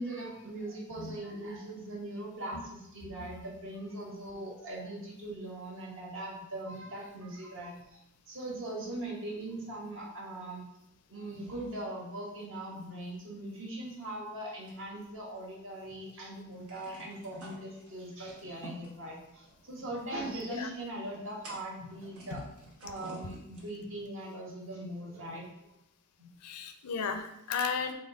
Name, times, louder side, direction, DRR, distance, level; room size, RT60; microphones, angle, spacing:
voice 1, 0.0-8.0 8.3-10.6 11.1-22.4 22.8-25.4 26.2-26.3, right 1 dB, 60° right, -3 dB, 1.2 m, -40 dB
sound 1, 14.7-15.8 16.1-16.2 16.5-24.0, right 1 dB, 85° right, 1.3 m, -51 dB
voice 2, 26.4-27.9, left 5 dB, 80° left, 8 dB, 0.5 m, -34 dB
4.1 x 3.1 x 3.8 m, 0.86 s
head